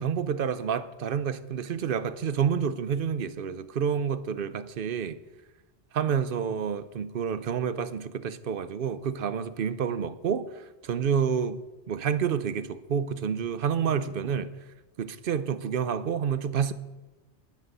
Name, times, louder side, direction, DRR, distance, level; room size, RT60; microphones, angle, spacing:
voice 1, 0.0-5.2 5.9-11.6 11.9-14.5 15.0-16.7, right 7 dB, 55° right, 0.8 m, -29 dB
10.5 x 9.5 x 6.7 m
omnidirectional pair, 1.2 m